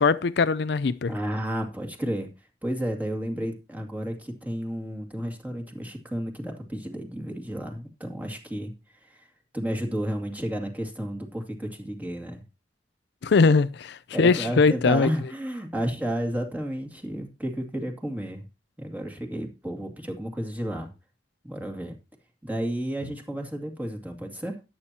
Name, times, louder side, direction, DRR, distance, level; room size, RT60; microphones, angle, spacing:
voice 1, 0.0-1.1 13.2-15.1, left 4 dB, 65° left, 0.5 m, -21 dB
voice 2, 1.1-2.3 2.6-8.7 9.0-9.3 9.5-12.4 14.1-18.5 18.8-20.9 21.4-22.0 22.4-24.6, equal, 10° right, 2.2 m, -32 dB
13.5 x 10.0 x 2.8 m
head